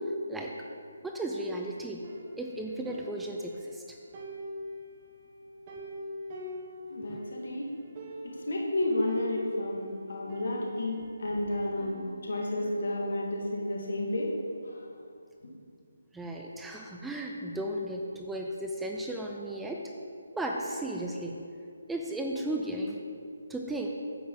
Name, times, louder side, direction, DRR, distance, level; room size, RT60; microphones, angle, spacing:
voice 1, 0.0-2.1 2.4-4.0 7.1-7.2 16.1-19.9 20.3-21.4 21.9-23.0 23.5-23.9, right 1 dB, 5° right, 0 dB, 0.5 m, -35 dB
sound 1, 2.0-3.8 4.1-7.4 7.7-7.8 8.0-8.6 9.1-11.1 11.5-13.2, equal, 35° right, 1.3 m, -44 dB
voice 2, 6.9-7.7 8.2-14.3 14.6-14.8, left 1 dB, 65° left, -2 dB, 2.0 m, -31 dB
9.2 x 8.2 x 3.9 m, 2.4 s
figure-of-eight pair, 150°, 0 cm